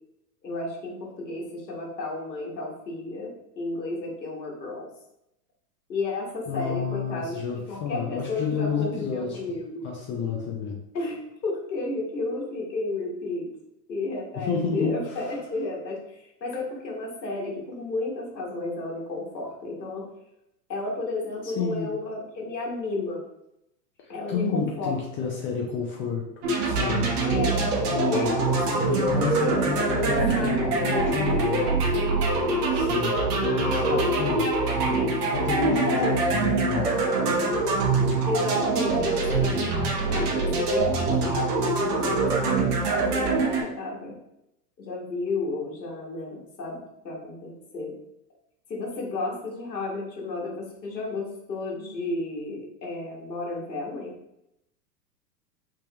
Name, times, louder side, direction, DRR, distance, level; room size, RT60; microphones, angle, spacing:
voice 1, 0.4-4.9 5.9-9.9 10.9-13.5 13.9-20.1 20.7-23.2 24.1-25.3 27.2-27.8 28.1-31.8 33.4-34.2 35.8-36.1 38.3-42.6 42.9-44.2 44.8-47.9 48.7-54.1, left 2 dB, 85° left, -2 dB, 1.4 m, -32 dB
voice 2, 6.5-9.4 9.8-10.8 14.4-15.3 21.4-21.9 24.0-26.3 26.6-27.1 27.7-28.3 28.8-31.6 32.7-33.2 33.6-34.4 35.2-37.0, left 6 dB, 25° left, -1 dB, 0.6 m, -30 dB
sound 1, 26.4-43.6, right 3 dB, 65° right, 1.1 m, -24 dB
3.5 x 3.1 x 2.9 m, 0.82 s
hypercardioid pair, 105°, 50 cm